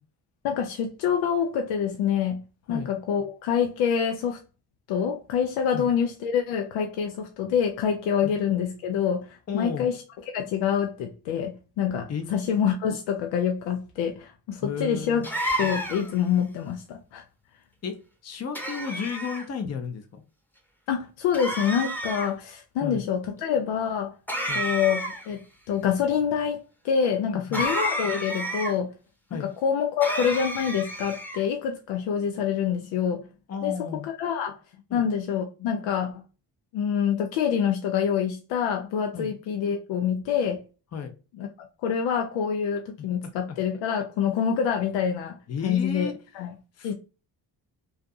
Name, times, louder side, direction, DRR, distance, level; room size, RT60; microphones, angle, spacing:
voice 1, 0.4-2.4 2.7-4.4 4.9-10.0 10.3-15.3 15.6-17.2 20.9-24.1 24.5-28.9 29.4-33.2 33.6-33.7 34.0-34.6 34.9-36.1 36.7-40.6 41.4-41.5 41.8-45.4 45.6-46.1 46.3-46.5 46.8-46.9, left 7 dB, 75° left, 0.6 m, -26 dB
voice 2, 9.5-9.9 12.1-12.3 14.6-15.3 17.8-17.9 18.2-20.2 22.8-23.0 24.5-24.7 27.3-27.7 29.3-29.5 33.5-34.1 34.9-35.1 39.1-39.3 40.9-41.1 43.0-43.1 45.5-46.1 46.8-46.9, left 6 dB, 35° left, 0.7 m, -33 dB
sound 1, 15.2-16.2 18.6-19.4 21.3-22.3 24.3-25.3 27.5-28.7 30.0-31.4, equal, 5° left, 0.9 m, -30 dB
2.6 x 2.4 x 2.3 m
supercardioid pair, 50°, 47 cm